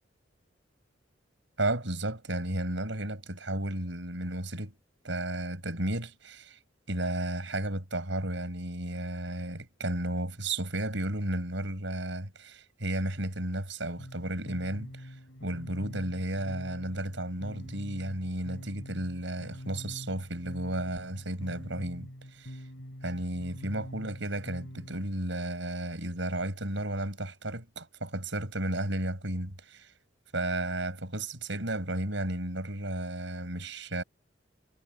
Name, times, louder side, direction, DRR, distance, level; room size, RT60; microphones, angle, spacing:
voice 1, 1.6-4.7 5.0-6.6 6.9-15.2 15.4-22.6 23.0-29.9 30.3-34.0, right 1 dB, 75° right, 6.6 m, -33 dB
sound 1, 14.0-25.1, equal, 75° left, 6.3 m, -45 dB
head